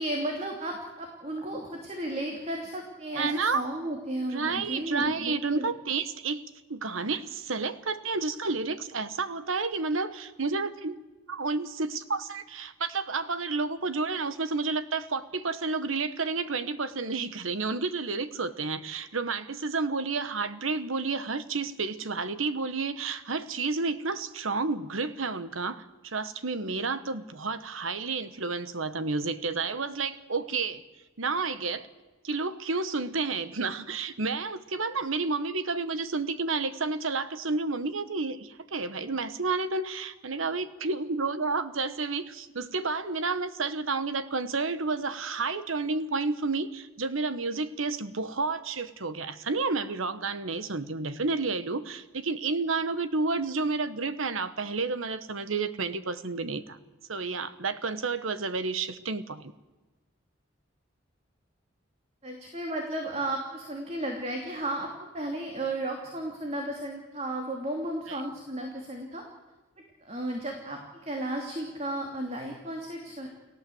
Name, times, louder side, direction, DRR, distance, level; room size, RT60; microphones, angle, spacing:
voice 1, 0.0-5.7 62.2-69.2 70.0-73.3, right 1 dB, 30° right, 1 dB, 2.8 m, -34 dB
voice 2, 3.2-3.6 4.3-11.0 11.3-30.8 31.2-31.9 32.2-56.8 57.1-59.5 68.1-68.2, right 4 dB, 90° right, 12 dB, 1.3 m, -30 dB
30.0 x 17.0 x 7.9 m, 1.2 s
head